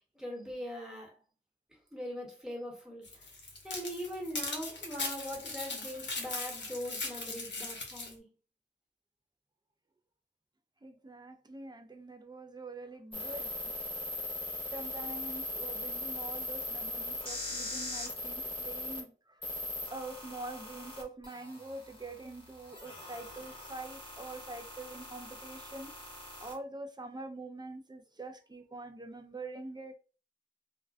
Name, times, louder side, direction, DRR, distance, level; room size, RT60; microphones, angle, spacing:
voice 1, 0.1-1.1 1.9-3.2 3.6-8.2, equal, 5° right, 1.1 m, -41 dB
sound 1, 3.0-8.1, left 3 dB, 80° left, 0.6 m, -39 dB
voice 2, 10.8-13.7 14.7-19.4 19.9-25.9 26.4-30.0, right 2 dB, 25° right, 0.4 m, -45 dB
sound 2, 13.1-19.0 19.4-26.5, left 1 dB, 30° left, 0.9 m, -40 dB
2.4 x 2.2 x 2.4 m
wide cardioid pair, 55°, 19 cm